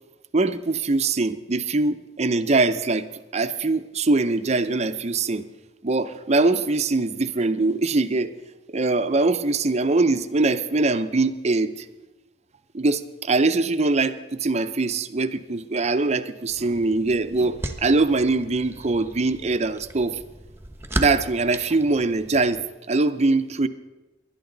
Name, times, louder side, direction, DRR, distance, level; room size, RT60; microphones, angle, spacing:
voice 1, 0.3-3.1 3.3-5.5 5.8-8.3 8.7-11.8 12.7-20.2 21.0-22.6 22.9-23.7, right 3 dB, 40° right, 10 dB, 0.6 m, -22 dB
sound 1, 16.5-22.6, right 1 dB, 15° right, 1.0 m, -36 dB
20.5 x 11.5 x 3.9 m, 1.1 s
head